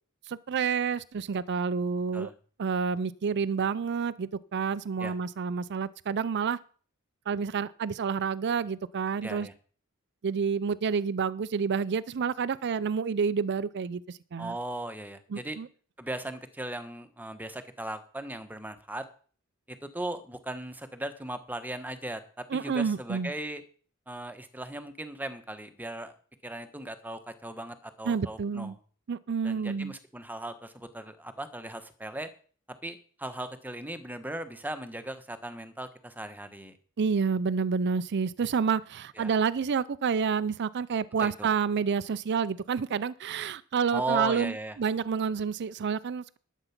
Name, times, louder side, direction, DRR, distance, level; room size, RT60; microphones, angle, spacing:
voice 1, 0.3-2.3 2.6-6.6 7.3-9.5 10.2-14.5 15.3-15.7 22.5-23.3 28.1-28.7 29.1-29.9 37.0-46.4, right 6 dB, 55° right, 17 dB, 0.4 m, -29 dB
voice 2, 9.2-9.5 14.4-15.6 16.0-19.0 19.8-23.6 24.1-26.1 26.4-28.8 29.4-32.3 32.8-36.8 39.2-39.3 41.2-41.5 43.9-44.8, right 1 dB, 10° right, 10 dB, 1.2 m, -37 dB
12.0 x 8.1 x 5.8 m, 0.43 s
head